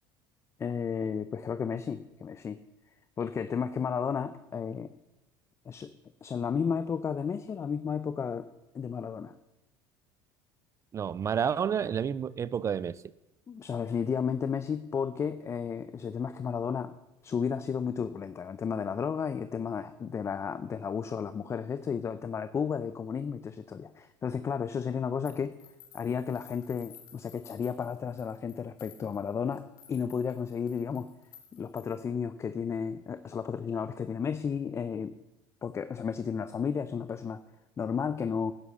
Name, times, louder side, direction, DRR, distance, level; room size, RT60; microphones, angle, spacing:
voice 1, 0.6-2.6 3.2-4.9 5.7-5.9 6.2-8.5 8.7-9.3 13.5-16.9 17.2-25.5 25.9-31.1 31.5-35.2 35.6-37.4 37.8-38.5, left 6 dB, 30° left, 12 dB, 0.6 m, -33 dB
voice 2, 10.9-13.0, right 7 dB, 30° right, 18 dB, 0.4 m, -30 dB
sound 1, 25.3-32.1, left 9 dB, 65° left, 2.8 m, -56 dB
11.5 x 9.8 x 7.0 m, 0.99 s
supercardioid pair, 105°, 10 cm